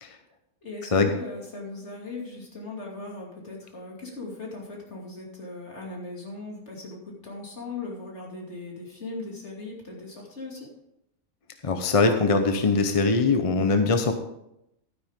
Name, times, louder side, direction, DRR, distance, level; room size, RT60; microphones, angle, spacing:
voice 1, 0.6-10.7, left 3 dB, 50° left, -2 dB, 2.9 m, -39 dB
voice 2, 11.6-14.1, left 3 dB, 30° left, 6 dB, 0.7 m, -22 dB
12.0 x 9.6 x 3.6 m, 0.82 s
omnidirectional pair, 1.5 m